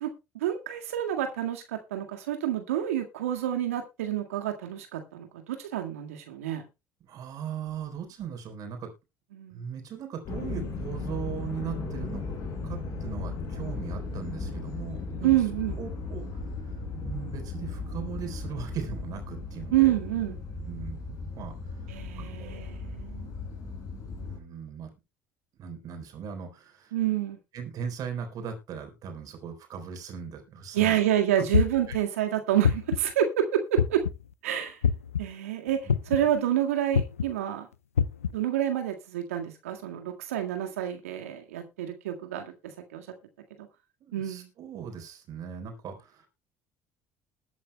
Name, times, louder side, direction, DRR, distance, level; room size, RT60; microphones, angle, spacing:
voice 1, 0.0-6.6 9.3-9.7 15.2-15.8 19.7-20.4 21.9-23.3 26.9-27.4 30.7-34.0 34.4-34.8 35.2-35.8 36.1-37.7 38.3-42.5 42.9-43.1 44.1-44.5, right 11 dB, 80° right, 5 dB, 1.8 m, -28 dB
voice 2, 7.0-8.9 9.5-12.4 12.6-15.4 15.8-16.3 16.9-19.9 20.7-21.5 22.2-22.7 24.2-24.9 25.6-27.2 27.5-31.0 31.4-31.5 35.8-36.2 44.0-46.3, right 7 dB, 55° right, 4 dB, 4.0 m, -38 dB
sound 1, 10.3-24.4, left 3 dB, 50° left, 5.2 m, -36 dB
sound 2, 31.5-32.0 32.6-33.1 33.8-34.2 34.8-35.2 35.9-36.3 36.9-37.3 38.0-38.3, left 7 dB, 90° left, 0.5 m, -24 dB
21.0 x 8.4 x 2.2 m, 0.26 s
hypercardioid pair, 60°, 8 cm